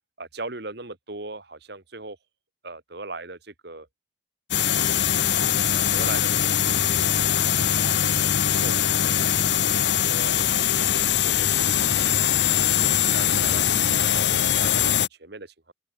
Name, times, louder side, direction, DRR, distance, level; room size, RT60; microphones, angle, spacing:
voice 1, 0.2-2.2 2.6-3.9 4.5-5.0 5.7-7.2 7.6-9.2 9.6-11.8 12.5-15.7, right 3 dB, 55° right, 2.1 m, -40 dB
sound 1, 4.5-15.1, left 10 dB, 60° left, 1.0 m, -22 dB
open air
head